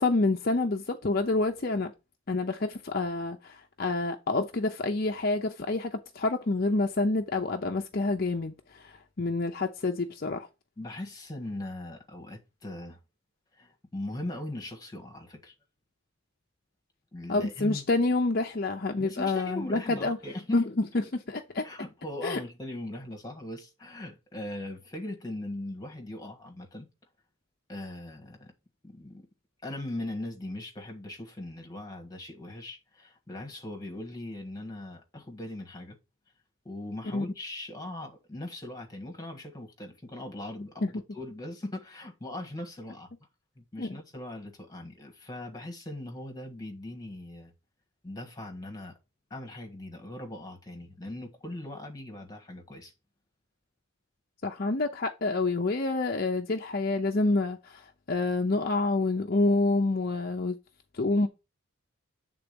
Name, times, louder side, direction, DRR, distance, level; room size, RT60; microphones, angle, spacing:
voice 1, 0.0-1.9 2.3-10.5 17.3-20.2 20.5-20.6 21.5-21.6 22.2-22.4 37.1-37.2 40.8-40.9 43.8-44.0 54.4-60.6 60.9-61.3, left 2 dB, 45° left, 0.6 m, -28 dB
voice 2, 10.8-13.0 13.5-15.5 17.1-17.8 19.0-20.7 21.0-21.1 21.6-26.9 27.7-28.5 28.8-29.3 29.6-36.0 36.6-43.1 43.5-47.5 48.0-49.0 49.3-52.9, left 1 dB, 20° left, 1.5 m, -40 dB
8.1 x 3.8 x 5.2 m
head